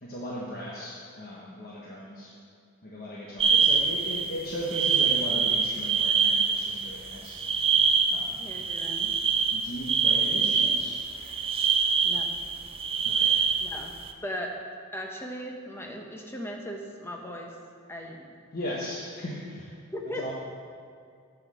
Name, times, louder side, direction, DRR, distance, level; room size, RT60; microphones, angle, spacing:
voice 1, 0.0-2.3 2.8-7.4 8.1-8.5 9.5-11.3 13.0-13.4 18.5-19.7 20.2-20.3, equal, 45° left, -5 dB, 1.1 m, -37 dB
sound 1, 3.4-14.1, right 6 dB, 25° right, 0.5 m, -25 dB
voice 2, 8.3-9.1 12.0-12.3 13.6-13.9 14.2-14.6 14.9-17.5 17.9-18.3 19.9-20.3, equal, 10° left, 1 dB, 0.9 m, -37 dB
7.3 x 7.1 x 7.4 m, 2.3 s
head